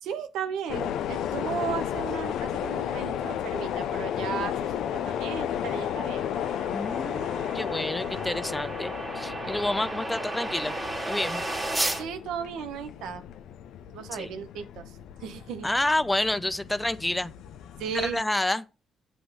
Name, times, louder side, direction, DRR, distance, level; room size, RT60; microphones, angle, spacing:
voice 1, 0.0-6.3 11.9-13.2 13.9-14.9 15.2-15.7 17.8-18.2, right 7 dB, 90° right, 0.9 m, -35 dB
sound 1, 0.7-18.2, left 10 dB, 80° left, 0.5 m, -34 dB
sound 2, 3.4-12.0, right 1 dB, 20° right, 1.8 m, -35 dB
voice 2, 6.7-10.7 11.1-11.4 14.1-14.3 15.6-17.3 17.9-18.6, left 1 dB, 10° left, 0.5 m, -29 dB
7.8 x 3.1 x 6.2 m
cardioid pair, 90°, 0 cm